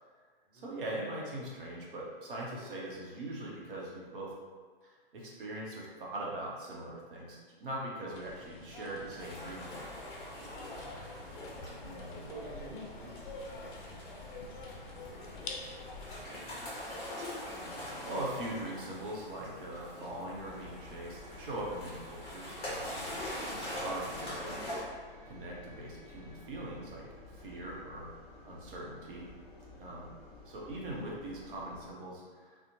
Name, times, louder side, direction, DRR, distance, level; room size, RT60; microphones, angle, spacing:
voice 1, 0.5-4.3 5.1-9.9 11.8-12.2 17.2-17.6 18.0-22.9 23.4-24.6 25.2-28.1 28.4-29.3 29.8-30.1 30.4-32.6, right 1 dB, 60° right, -3 dB, 0.8 m, -41 dB
sound 1, 8.1-16.2, left 2 dB, 55° left, 0.5 m, -46 dB
sound 2, 9.2-24.8, left 1 dB, 20° left, 0.8 m, -43 dB
voice 2, 12.3-15.5 15.9-16.8 29.6-30.0, right 1 dB, 15° right, -8 dB, 0.6 m, -52 dB
Engine, 20.4-31.9, left 2 dB, 5° left, 1.0 m, -53 dB
2.7 x 2.1 x 2.7 m, 1.5 s
figure-of-eight pair, 115°, 29 cm